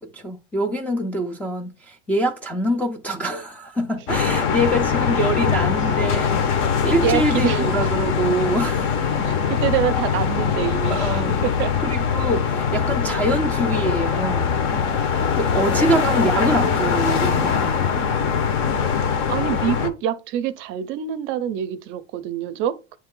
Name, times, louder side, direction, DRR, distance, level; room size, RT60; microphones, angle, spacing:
voice 1, 0.0-9.3 10.9-11.3 11.8-14.6 15.3-17.9, right 1 dB, 5° left, 0.4 m, -25 dB
sound 1, 4.1-19.9, left 6 dB, 45° left, 0.9 m, -22 dB
voice 2, 7.0-7.9 9.2-11.7 16.2-16.3 16.6-16.8 19.3-23.0, right 10 dB, 40° right, 0.6 m, -26 dB
8.8 x 3.2 x 3.7 m
cardioid pair, 170°, 30 cm